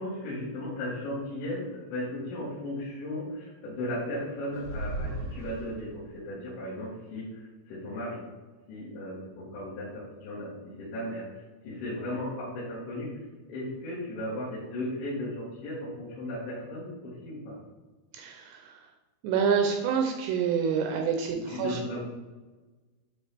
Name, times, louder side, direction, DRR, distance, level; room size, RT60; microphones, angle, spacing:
voice 1, 0.0-8.2 8.7-10.5 10.8-13.1 13.5-17.6 21.5-22.0, left 1 dB, 70° left, -9 dB, 3.7 m, -36 dB
sound 1, 4.5-6.2, right 1 dB, 70° right, 1.3 m, -36 dB
voice 2, 18.1-18.9 19.2-22.0, right 6 dB, 85° right, 3 dB, 2.5 m, -28 dB
10.0 x 3.6 x 3.3 m, 1.3 s
omnidirectional pair, 5.7 m